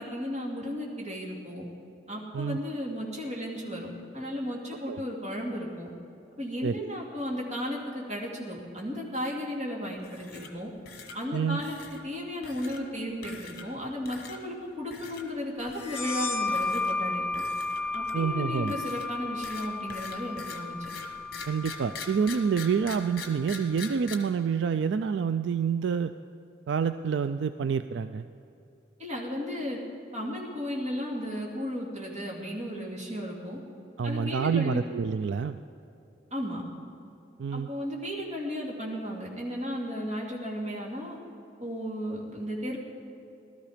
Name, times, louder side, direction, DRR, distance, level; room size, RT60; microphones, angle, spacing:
voice 1, 0.0-1.6 2.1-5.9 6.4-10.7 11.1-11.8 12.0-17.2 17.9-20.9 29.0-29.8 30.1-33.6 34.0-34.8 36.3-36.6 37.5-41.2 41.6-42.8, equal, 35° right, -3 dB, 2.7 m, -34 dB
voice 2, 6.6-7.0 11.3-11.6 18.1-18.7 21.5-26.1 26.7-28.3 34.0-35.6 37.4-37.7, right 6 dB, 70° right, 11 dB, 0.3 m, -28 dB
sound 1, 10.0-10.6 10.9-11.2 11.6-12.0 12.4-12.8 13.2-13.8 14.1-14.4 14.9-15.2 15.7-16.1 16.5-16.9 17.3-18.3 18.7-24.1, left 5 dB, 50° left, 1.3 m, -43 dB
sound 2, 15.8-23.1, left 3 dB, 30° left, 1.3 m, -33 dB
17.5 x 13.0 x 5.1 m, 2.8 s
head